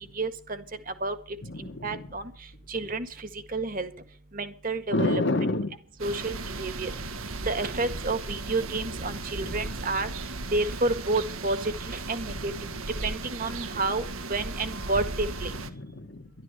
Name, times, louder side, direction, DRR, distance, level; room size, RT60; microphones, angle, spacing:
voice 1, 0.2-0.6 1.0-1.1 1.8-2.2 2.7-3.9 4.3-5.2 6.0-6.9 7.5-10.1 10.5-12.5 13.0-14.0 14.3-15.5, right 2 dB, 40° right, 11 dB, 1.7 m, -30 dB
voice 2, 1.4-2.1 4.9-5.8 9.4-10.0 12.2-12.6 15.7-16.3, left 2 dB, 55° left, 5 dB, 1.6 m, -30 dB
sound 1, 6.0-15.7, right 3 dB, 80° right, 1.6 m, -36 dB
12.0 x 12.0 x 6.6 m, 0.42 s
head